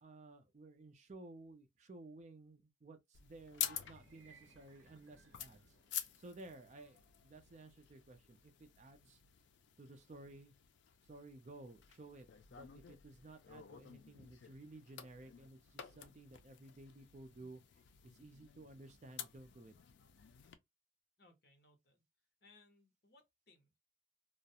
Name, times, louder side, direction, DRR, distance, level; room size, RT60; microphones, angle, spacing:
voice 1, 0.0-5.6 6.2-9.2 9.8-10.5 11.1-17.6 18.1-19.7, right 2 dB, 40° right, 0.4 m, -55 dB
sound 1, 3.1-20.5, left 10 dB, 75° left, 0.4 m, -50 dB
sound 2, 3.8-14.0, right 5 dB, 75° right, 0.6 m, -72 dB
voice 2, 21.2-22.0 22.4-23.8, left 3 dB, 55° left, 0.9 m, -67 dB
2.3 x 2.0 x 2.7 m
head